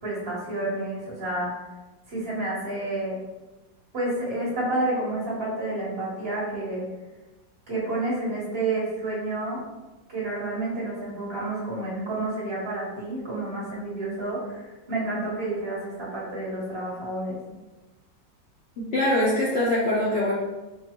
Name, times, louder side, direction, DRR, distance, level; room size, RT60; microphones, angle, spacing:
voice 1, 0.0-1.5 2.1-3.2 3.9-6.9 7.7-9.6 10.1-17.4, right 2 dB, 35° right, -6 dB, 1.1 m, -30 dB
voice 2, 18.8-20.3, left 1 dB, 75° left, -7 dB, 0.6 m, -23 dB
4.6 x 2.3 x 2.9 m, 1.1 s
omnidirectional pair, 2.1 m